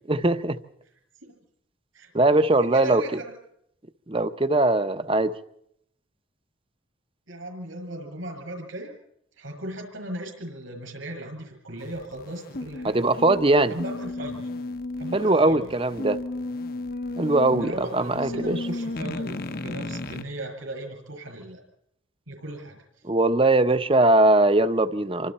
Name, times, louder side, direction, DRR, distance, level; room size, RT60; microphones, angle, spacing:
voice 1, 0.1-0.6 2.1-3.0 4.1-5.3 12.8-13.8 15.1-16.2 17.2-18.5 23.0-25.3, right 2 dB, 25° right, 0.8 m, -21 dB
voice 2, 2.6-3.3 7.3-8.9 9.4-13.0 13.7-14.5 15.0-15.7 17.5-21.6 22.3-22.8, right 1 dB, 80° right, 6.5 m, -36 dB
sound 1, 11.8-20.2, left 2 dB, 45° left, 0.9 m, -34 dB
28.0 x 25.0 x 4.3 m
head